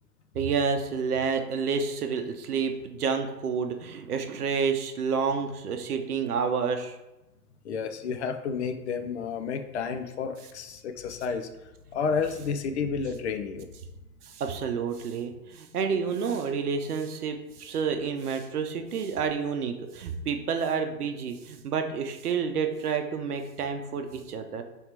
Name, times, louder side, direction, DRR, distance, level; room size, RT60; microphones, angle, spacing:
voice 1, 0.3-7.0 14.2-24.6, right 6 dB, 65° right, 6 dB, 0.7 m, -29 dB
voice 2, 7.6-11.5 11.9-13.7, left 5 dB, 45° left, 7 dB, 0.5 m, -31 dB
3.5 x 2.9 x 4.6 m, 0.98 s
figure-of-eight pair, 105°, 48 cm